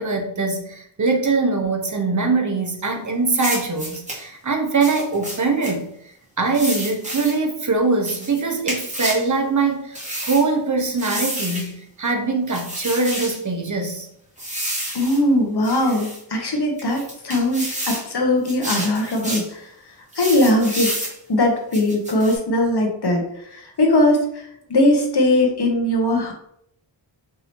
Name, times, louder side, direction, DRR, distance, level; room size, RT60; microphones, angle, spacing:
voice 1, 0.0-5.9 6.4-14.1, right 3 dB, 40° right, 3 dB, 0.8 m, -22 dB
sound 1, 3.4-4.2 4.8-5.7 6.5-7.4 8.0-9.3 9.9-10.5 11.0-11.7 12.5-13.4 14.4-15.2 15.6-16.2 16.8-18.1 18.4-19.5 20.1-21.2 21.7-22.4, right 1 dB, 15° right, 1.3 m, -30 dB
voice 2, 14.9-19.6 20.2-23.2 23.5-24.2 24.7-26.3, left 1 dB, 60° left, 2 dB, 1.0 m, -20 dB
4.7 x 2.7 x 2.9 m, 0.72 s
wide cardioid pair, 70°, 45 cm